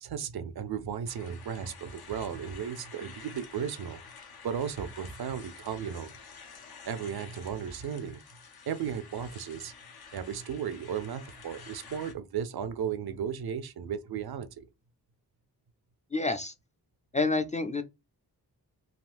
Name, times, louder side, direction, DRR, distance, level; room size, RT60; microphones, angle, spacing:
voice 1, 0.0-4.0 4.4-6.1 6.9-8.2 8.7-9.7 10.1-14.6, right 8 dB, 70° right, 0.5 m, -35 dB
sound 1, 1.1-12.1, left 5 dB, 70° left, 0.7 m, -50 dB
voice 2, 16.1-16.5 17.1-17.8, left 3 dB, 20° left, 0.4 m, -28 dB
3.6 x 2.4 x 2.5 m
cardioid pair, 60°, 39 cm